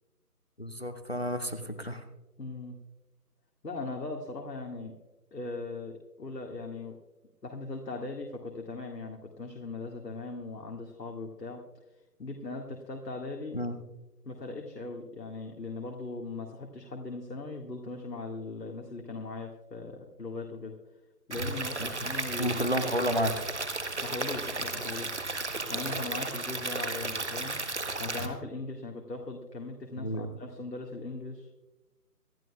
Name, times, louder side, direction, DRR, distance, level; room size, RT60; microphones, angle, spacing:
voice 1, 0.6-2.0 13.5-13.8 22.4-23.3 30.0-30.3, equal, 40° left, 10 dB, 0.7 m, -31 dB
voice 2, 2.4-2.8 3.6-4.9 5.3-7.0 7.4-11.6 12.2-13.6 14.2-20.8 21.3-22.6 24.0-25.3 25.7-27.6 28.0-31.5, left 3 dB, 85° left, 1 dB, 2.1 m, -39 dB
Stream / Liquid, 21.3-28.3, right 3 dB, 45° right, 1.2 m, -34 dB
26.0 x 11.0 x 2.3 m, 1.0 s
figure-of-eight pair, 180°, 48 cm